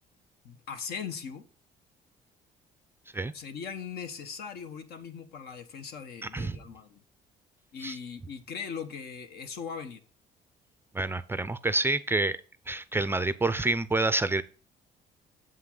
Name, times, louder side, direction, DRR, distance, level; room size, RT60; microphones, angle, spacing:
voice 1, 0.4-1.4 3.3-7.0 7.7-10.0, left 6 dB, 70° left, 8 dB, 1.3 m, -39 dB
voice 2, 10.9-12.4 12.7-14.4, right 2 dB, 15° right, 14 dB, 0.4 m, -27 dB
7.5 x 5.7 x 3.8 m, 0.39 s
cardioid pair, 110°, 17 cm